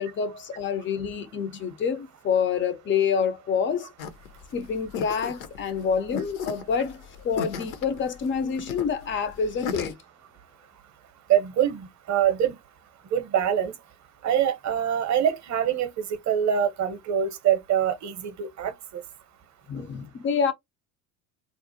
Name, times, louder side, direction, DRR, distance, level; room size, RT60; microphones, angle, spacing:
voice 1, 0.0-3.9 4.5-10.0 19.7-20.5, left 6 dB, 25° left, 0.4 m, -27 dB
sound 1, 4.0-9.9, left 6 dB, 75° left, 0.8 m, -36 dB
voice 2, 11.3-12.6 13.1-13.7 14.2-18.7, right 9 dB, 35° right, 0.7 m, -24 dB
2.5 x 2.0 x 2.6 m
hypercardioid pair, 70°, 50 cm